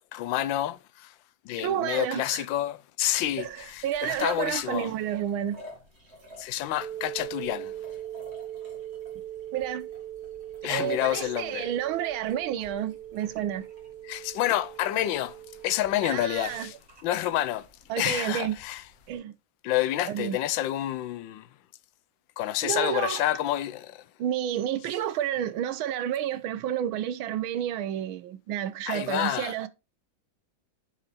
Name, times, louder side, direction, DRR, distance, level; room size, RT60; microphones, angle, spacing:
voice 1, 0.1-1.2 1.4-4.9 6.4-7.8 10.6-11.7 14.0-16.7 17.0-17.7 18.0-18.8 19.6-21.5 22.4-24.0 28.9-29.6, left 13 dB, 75° left, 1.3 m, -29 dB
voice 2, 1.6-2.4 3.4-5.6 9.5-9.9 10.7-13.7 16.0-16.7 17.9-18.5 19.1-19.3 20.1-20.4 22.6-23.2 24.2-29.7, right 11 dB, 90° right, 1.6 m, -30 dB
sound 1, 3.0-19.2, left 1 dB, 35° right, 2.3 m, -54 dB
sound 2, 6.8-16.7, right 12 dB, 55° right, 1.8 m, -41 dB
8.9 x 4.5 x 4.2 m
omnidirectional pair, 2.2 m